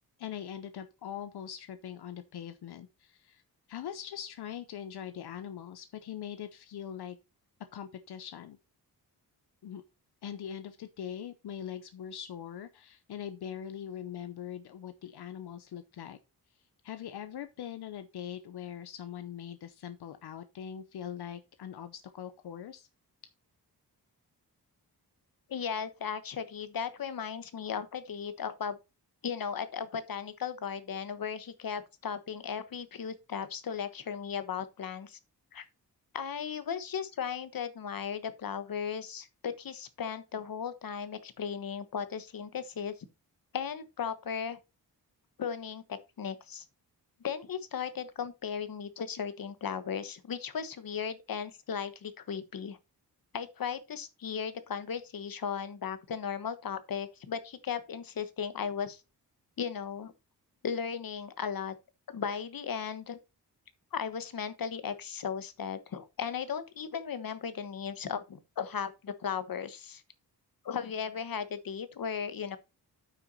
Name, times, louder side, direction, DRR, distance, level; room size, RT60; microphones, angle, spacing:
voice 1, 0.2-3.4 3.7-7.2 7.7-8.6 9.6-9.8 10.2-16.2 16.8-22.9, left 9 dB, 90° left, 0.8 m, -42 dB
voice 2, 25.5-28.8 29.2-35.2 35.5-35.6 36.1-42.9 43.5-44.6 45.4-46.6 47.2-52.8 53.3-59.0 59.6-60.1 60.6-61.7 62.1-63.2 63.9-70.0 70.6-72.6, left 7 dB, 60° left, 1.2 m, -36 dB
9.0 x 6.0 x 4.1 m
wide cardioid pair, 95°, 38 cm